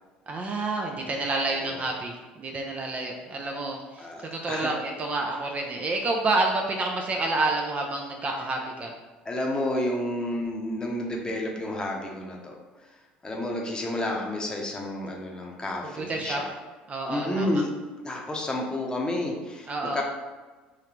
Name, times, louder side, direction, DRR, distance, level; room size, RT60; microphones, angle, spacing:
voice 1, 0.3-8.9 16.0-16.4 16.9-17.6 19.7-20.0, right 2 dB, 30° right, 1 dB, 0.5 m, -29 dB
voice 2, 1.4-1.9 4.0-4.7 9.2-12.5 13.2-16.5 17.1-17.7 18.0-20.0, left 1 dB, 15° left, 0 dB, 0.8 m, -30 dB
3.7 x 3.2 x 3.0 m, 1.3 s
figure-of-eight pair, 60°, 5 cm